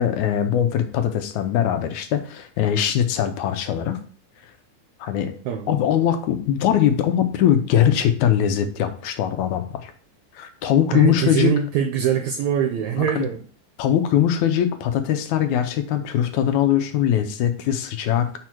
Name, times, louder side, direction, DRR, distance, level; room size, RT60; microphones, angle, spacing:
voice 1, 0.0-4.0 5.0-5.3 5.7-9.9 10.4-11.5 13.2-13.3 13.8-18.3, left 10 dB, 75° left, 7 dB, 2.0 m, -21 dB
voice 2, 10.9-13.4, right 8 dB, 75° right, 6 dB, 1.8 m, -23 dB
5.3 x 4.8 x 6.0 m, 0.43 s
omnidirectional pair, 3.7 m